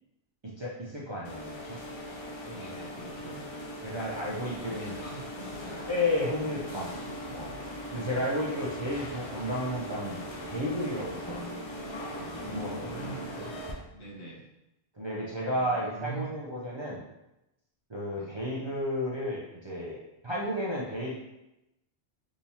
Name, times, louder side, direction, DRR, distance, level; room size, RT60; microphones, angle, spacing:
voice 1, 0.4-1.8 2.5-2.7 3.8-4.9 5.9-7.6 7.9-11.5 11.8-12.9 13.4-13.9 14.9-17.0 17.9-20.0 20.2-21.2, left 1 dB, 35° right, -6 dB, 0.4 m, -33 dB
sound 1, 1.2-13.7, equal, 50° left, 0.3 m, -39 dB
voice 2, 2.4-3.4 4.7-5.8 12.7-13.4 13.9-14.5 15.5-16.3 18.1-18.4, right 4 dB, 80° left, -4 dB, 1.2 m, -43 dB
3.6 x 2.9 x 2.7 m, 0.91 s
omnidirectional pair, 1.1 m